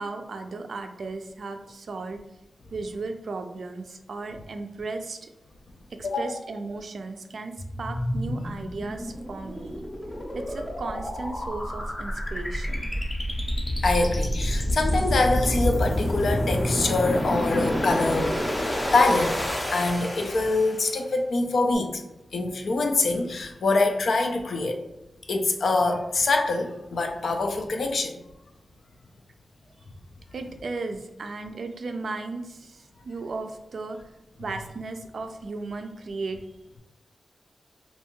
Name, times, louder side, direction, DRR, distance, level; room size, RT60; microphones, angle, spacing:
voice 1, 0.0-2.2 2.7-5.3 5.9-9.8 10.3-13.0 30.3-34.0 34.4-36.4, right 3 dB, 70° right, 6 dB, 0.3 m, -35 dB
voice 2, 6.0-6.4 13.8-19.4 19.7-22.0 22.3-24.8 25.3-28.1, left 3 dB, 70° left, 4 dB, 0.4 m, -24 dB
sound 1, 7.6-21.0, equal, 20° left, 0.5 m, -28 dB
2.6 x 2.3 x 2.9 m, 0.94 s
wide cardioid pair, 90°, 0 cm